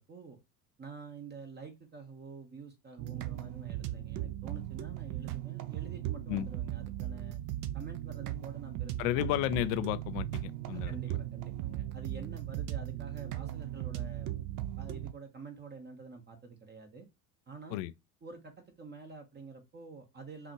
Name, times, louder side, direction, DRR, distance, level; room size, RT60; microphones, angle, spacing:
voice 1, 0.1-0.4 0.8-7.4 7.7-9.7 10.7-14.3 14.8-17.1 17.5-17.8 18.2-20.5, right 4 dB, 20° right, 0.9 m, -48 dB
sound 1, 3.0-15.1, right 13 dB, 45° right, 0.6 m, -38 dB
voice 2, 9.0-11.2 17.7-17.9, left 14 dB, 55° left, 0.5 m, -33 dB
5.5 x 2.5 x 2.9 m
figure-of-eight pair, 65°, 46 cm